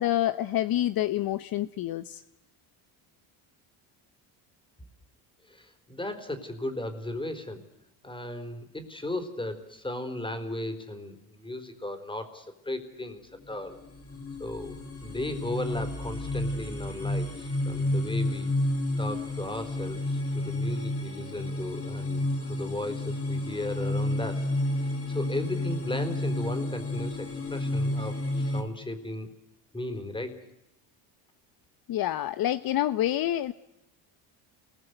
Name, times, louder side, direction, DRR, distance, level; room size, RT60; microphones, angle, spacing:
voice 1, 0.0-2.2 31.9-33.5, left 13 dB, 55° left, 13 dB, 0.9 m, -27 dB
voice 2, 5.5-7.6 8.0-13.2 13.5-13.8 14.4-18.5 19.0-24.5 24.8-29.3 29.7-30.4, left 1 dB, 10° left, 9 dB, 4.1 m, -36 dB
sound 1, 13.4-28.6, left 1 dB, 30° left, 3.8 m, -31 dB
28.5 x 20.5 x 8.0 m, 0.92 s
cardioid pair, 100°, 44 cm